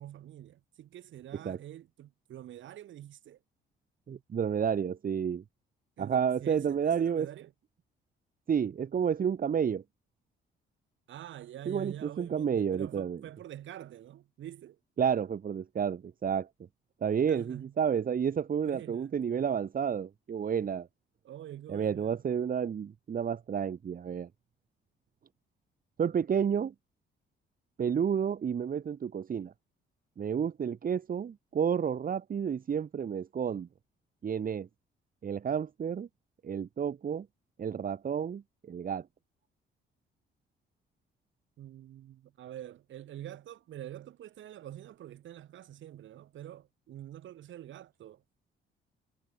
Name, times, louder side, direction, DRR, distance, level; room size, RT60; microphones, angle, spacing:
voice 1, 0.0-3.4 6.0-7.5 11.1-14.8 17.3-17.7 18.6-19.2 21.2-22.2 41.6-48.2, right 12 dB, 75° right, 3.0 m, -46 dB
voice 2, 4.1-5.4 6.0-7.3 8.5-9.8 11.7-13.2 15.0-16.5 17.0-20.9 21.7-24.3 26.0-26.7 27.8-29.5 30.2-33.7 34.2-34.7 35.2-36.1 36.4-37.3 37.6-38.4 38.7-39.0, right 7 dB, 45° right, 1.5 m, -30 dB
cardioid pair, 90°, 20 cm